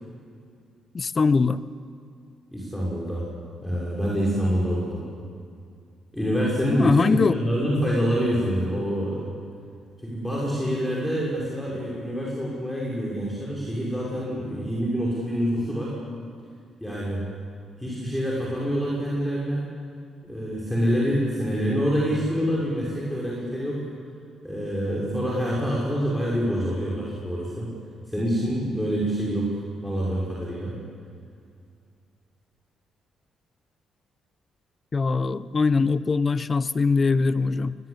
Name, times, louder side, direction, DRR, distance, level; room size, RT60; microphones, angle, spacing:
voice 1, 0.9-1.6 6.7-7.4 34.9-37.7, left 4 dB, 35° left, 15 dB, 0.9 m, -22 dB
voice 2, 2.5-3.2 3.6-5.0 6.1-9.3 10.0-15.9 16.8-17.3 17.8-19.7 20.3-23.8 24.4-27.7 28.1-29.5 29.8-30.8, equal, 5° left, -5 dB, 6.0 m, -26 dB
23.0 x 20.5 x 8.3 m, 2.3 s
cardioid pair, 90°, 0 cm